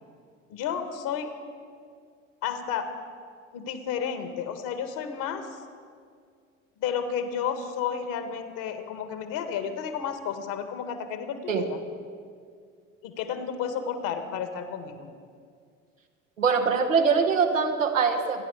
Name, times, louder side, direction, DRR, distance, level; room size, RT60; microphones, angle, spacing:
voice 1, 0.5-1.3 2.4-2.9 3.5-5.6 6.8-11.8 13.0-15.1, left 7 dB, 55° left, 8 dB, 1.7 m, -32 dB
voice 2, 16.4-18.5, right 5 dB, 80° right, 2 dB, 1.4 m, -23 dB
27.5 x 10.5 x 4.9 m, 2.2 s
figure-of-eight pair, 60°, 38 cm